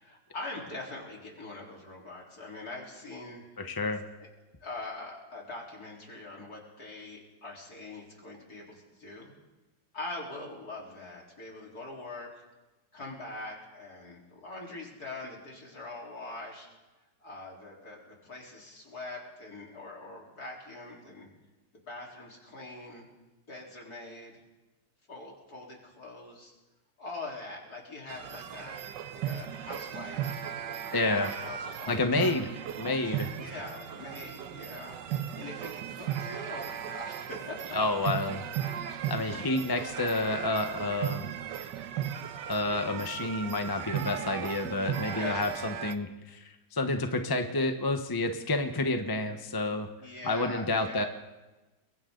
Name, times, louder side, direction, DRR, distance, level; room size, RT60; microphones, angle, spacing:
voice 1, 0.0-3.4 4.6-9.3 9.9-12.4 12.9-16.7 17.2-21.3 21.8-23.1 23.5-24.4 25.1-26.5 27.0-30.4 30.9-32.4 33.0-37.8 39.2-39.6 45.1-45.5 50.0-51.1, left 2 dB, 55° left, -2 dB, 4.6 m, -43 dB
voice 2, 3.6-4.0 30.9-31.3 31.9-32.4 32.8-33.3 37.7-38.4 39.1-41.3 42.5-49.9 50.2-51.0, left 2 dB, 15° left, 6 dB, 1.0 m, -29 dB
sound 1, 28.1-46.0, right 10 dB, 80° right, 1.5 m, -36 dB
29.5 x 22.5 x 3.9 m, 1.1 s
omnidirectional pair, 1.9 m